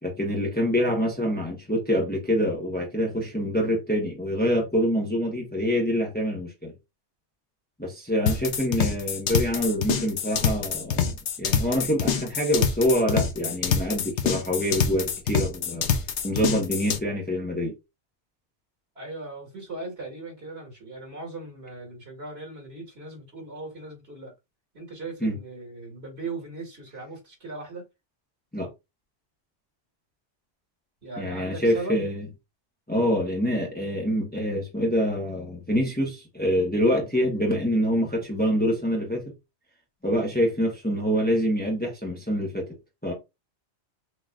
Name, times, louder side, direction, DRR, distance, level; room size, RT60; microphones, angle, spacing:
voice 1, 0.0-6.7 7.8-11.1 11.4-15.9 16.2-17.8 25.2-25.4 28.5-28.7 31.2-32.3 32.9-39.3 40.0-42.7 43.0-43.1, equal, 10° left, 1.1 m, -25 dB
sound 1, 8.3-17.0, left 7 dB, 80° left, 1.1 m, -26 dB
voice 2, 18.9-24.3 24.7-27.8 31.0-32.0, right 3 dB, 65° right, 2.6 m, -38 dB
6.3 x 3.0 x 2.4 m
omnidirectional pair, 1.2 m